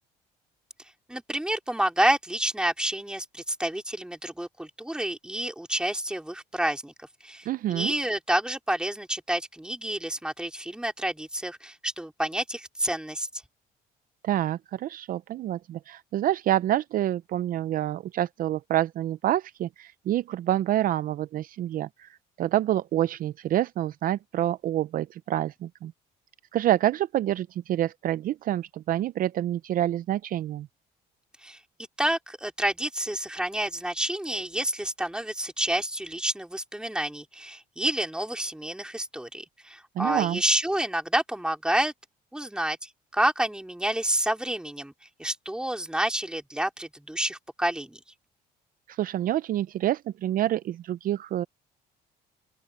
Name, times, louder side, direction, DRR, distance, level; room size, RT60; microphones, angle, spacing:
voice 1, 1.1-13.3 31.4-31.6 32.0-41.9 42.3-44.9 45.2-48.0, right 1 dB, 5° right, 3.6 m, -29 dB
voice 2, 7.5-7.9 14.2-22.1 22.4-25.9 26.5-30.7 40.0-40.4 48.9-51.5, right 13 dB, 55° right, 0.5 m, -27 dB
open air
cardioid pair, 110°, 17 cm